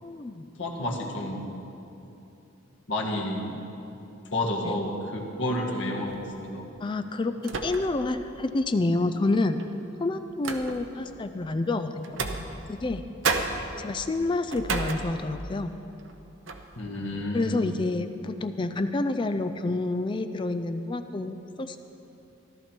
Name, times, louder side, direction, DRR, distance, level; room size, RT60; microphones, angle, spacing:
voice 1, 0.0-0.5 4.6-4.8 6.8-9.6 10.0-12.2 12.7-13.0 13.8-15.7 17.3-21.8, left 2 dB, 25° left, 9 dB, 0.4 m, -28 dB
voice 2, 0.6-1.4 2.9-3.5 4.3-6.6 16.8-17.7, left 1 dB, 65° left, -1 dB, 1.6 m, -30 dB
sound 1, 6.1-6.4 7.4-8.1 8.5-8.6 9.6-11.0 12.0-13.0 13.2-15.6 16.0-16.1 16.5-16.8, right 4 dB, 70° right, 0.9 m, -32 dB
14.0 x 13.0 x 4.5 m, 2.9 s
head